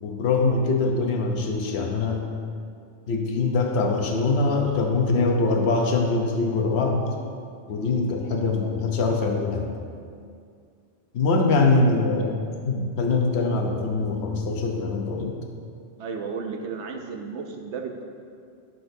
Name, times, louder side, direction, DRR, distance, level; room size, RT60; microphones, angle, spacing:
voice 1, 0.0-2.3 3.1-7.1 7.7-9.7 11.1-12.4 12.6-15.3, left 3 dB, 65° left, 1 dB, 1.1 m, -23 dB
voice 2, 16.0-18.0, right 5 dB, 75° right, 3 dB, 1.0 m, -33 dB
12.5 x 6.4 x 2.7 m, 2.3 s
omnidirectional pair, 1.2 m